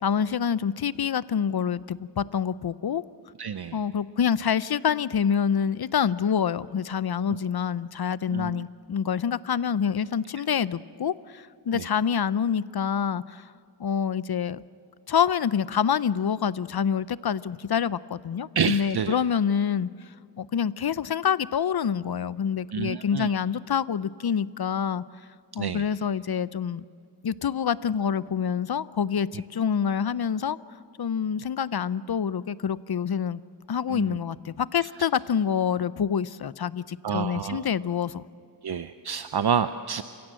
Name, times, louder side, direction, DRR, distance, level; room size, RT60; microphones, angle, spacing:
voice 1, 0.0-3.0 3.7-13.4 13.8-14.6 15.1-19.9 20.4-25.0 25.5-26.8 27.2-30.6 31.0-33.4 33.7-38.3, left 7 dB, 60° left, 18 dB, 0.6 m, -26 dB
voice 2, 3.4-3.8 7.3-7.4 8.3-8.6 11.7-11.9 18.5-19.2 22.7-23.3 25.6-25.9 33.9-34.2 37.0-37.7 38.6-40.0, right 7 dB, 65° right, 11 dB, 0.7 m, -28 dB
28.5 x 16.5 x 7.6 m, 2.3 s
wide cardioid pair, 75°, 42 cm